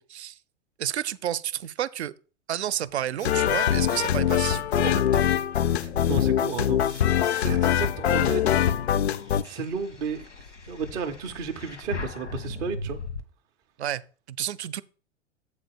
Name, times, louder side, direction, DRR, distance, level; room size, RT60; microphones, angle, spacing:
voice 1, 0.8-2.1 2.5-5.3 13.8-14.8, right 11 dB, 65° right, 0.5 m, -31 dB
sound 1, 2.9-7.1 7.6-13.2, left 3 dB, 80° left, 1.3 m, -41 dB
sound 2, 3.2-9.4, left 10 dB, 65° left, 0.5 m, -23 dB
voice 2, 5.8-8.6 9.4-10.3 10.7-13.0, right 5 dB, 10° right, 0.3 m, -33 dB
7.7 x 3.9 x 6.3 m
figure-of-eight pair, 100°, 36 cm